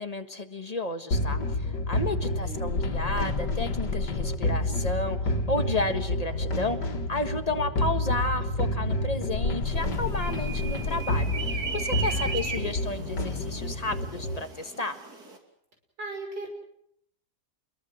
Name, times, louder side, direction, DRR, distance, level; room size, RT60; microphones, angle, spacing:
voice 1, 0.0-15.0, left 2 dB, 25° left, 7 dB, 1.6 m, -32 dB
sound 1, 1.1-14.4, left 2 dB, 80° left, 2.4 m, -29 dB
voice 2, 2.2-2.7 12.0-12.7 16.0-16.5, right 2 dB, 90° right, 3 dB, 6.6 m, -39 dB
sound 2, 9.7-15.4, right 5 dB, 65° right, 3.5 m, -37 dB
28.5 x 22.0 x 6.4 m, 0.70 s
omnidirectional pair, 1.8 m